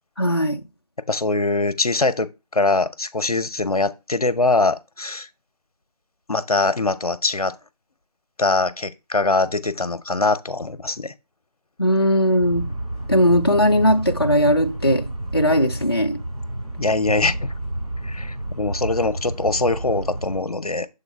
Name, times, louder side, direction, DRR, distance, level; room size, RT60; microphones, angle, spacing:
voice 1, 0.2-0.6 11.8-12.7 13.1-16.2, equal, 40° left, 0.4 m, -19 dB
voice 2, 1.1-5.3 6.3-7.6 8.4-11.1 16.8-17.5 18.0-20.9, left 3 dB, 65° left, 0.7 m, -22 dB
sound 1, 12.4-20.4, right 1 dB, 60° right, 3.1 m, -30 dB
7.0 x 3.8 x 4.3 m
figure-of-eight pair, 170°, 20 cm